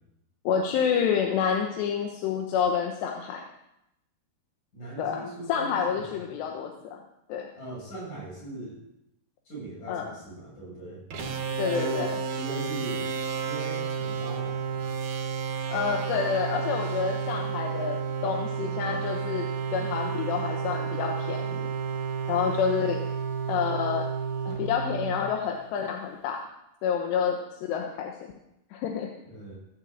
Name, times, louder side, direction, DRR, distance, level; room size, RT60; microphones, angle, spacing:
voice 1, 0.5-3.4 5.0-7.0 7.3-7.5 9.9-10.1 11.6-12.1 15.7-21.7 22.3-23.0 23.5-24.1 24.5-26.4 26.8-27.4 27.7-28.2 28.7-29.1, left 7 dB, 80° left, 3 dB, 3.2 m, -28 dB
voice 2, 4.7-6.2 7.6-8.8 9.5-11.0 11.6-12.1 12.4-13.1 13.4-14.9 29.2-29.6, right 2 dB, 45° left, -5 dB, 8.8 m, -39 dB
sound 1, 11.1-25.7, right 6 dB, 55° right, 2.5 m, -31 dB
16.5 x 7.7 x 7.9 m, 0.86 s
omnidirectional pair, 4.9 m